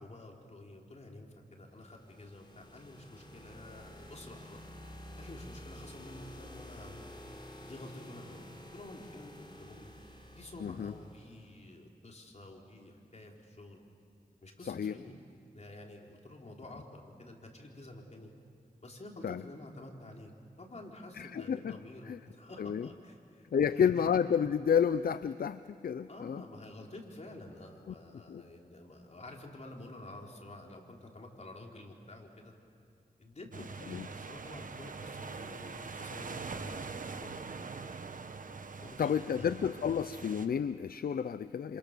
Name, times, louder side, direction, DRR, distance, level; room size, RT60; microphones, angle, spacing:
voice 1, 0.0-4.6 5.2-7.0 7.6-9.9 10.3-13.8 14.4-15.2 15.5-18.3 18.8-20.3 20.6-24.1 26.1-32.5 33.2-37.5 38.8-39.5, left 1 dB, 45° left, 0 dB, 4.3 m, -49 dB
sound 1, 1.7-11.5, left 1 dB, 30° left, 4.2 m, -50 dB
voice 2, 10.6-10.9 14.7-15.0 19.2-19.4 21.1-21.8 22.1-22.2 22.6-22.9 23.5-26.4 27.9-28.0 28.3-28.4 33.9-34.1 39.0-41.8, left 7 dB, 70° left, 13 dB, 0.6 m, -30 dB
sound 2, 33.5-40.5, right 4 dB, 60° right, 1.3 m, -43 dB
27.0 x 27.0 x 6.9 m, 2.5 s
cardioid pair, 60°, 16 cm